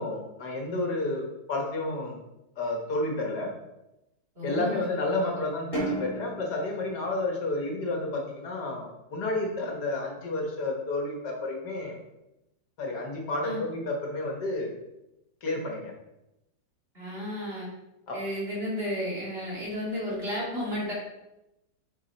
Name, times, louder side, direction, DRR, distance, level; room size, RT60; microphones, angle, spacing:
voice 1, 0.0-2.2 2.6-3.5 4.4-12.0 12.8-14.7 15.4-15.9 18.1-18.2, left 2 dB, 70° left, 1 dB, 1.8 m, -31 dB
voice 2, 4.4-4.8 5.2-5.3 13.4-13.6 16.9-17.7 18.1-20.9, left 1 dB, 35° right, -6 dB, 2.6 m, -32 dB
sound 1, 5.7-8.3, right 2 dB, 10° right, 2.7 m, -36 dB
6.7 x 4.8 x 4.4 m, 0.91 s
omnidirectional pair, 1.9 m